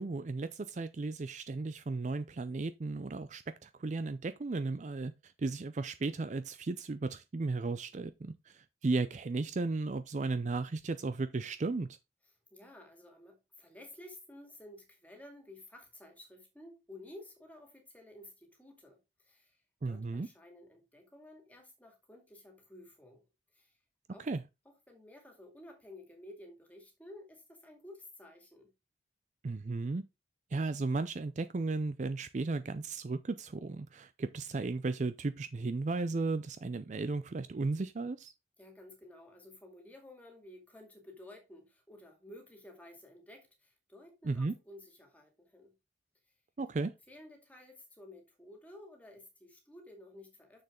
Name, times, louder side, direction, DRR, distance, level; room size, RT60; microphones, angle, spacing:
voice 1, 0.0-12.0 19.8-20.3 24.2-24.4 29.4-30.0 30.5-38.3 44.2-44.5 46.6-46.9, right 3 dB, 40° right, 0.4 m, -35 dB
voice 2, 12.5-19.6 19.8-23.2 23.5-23.7 24.1-24.3 24.7-28.7 38.6-45.7 47.1-50.6, left 1 dB, 10° left, 2.2 m, -53 dB
6.8 x 6.5 x 3.7 m
head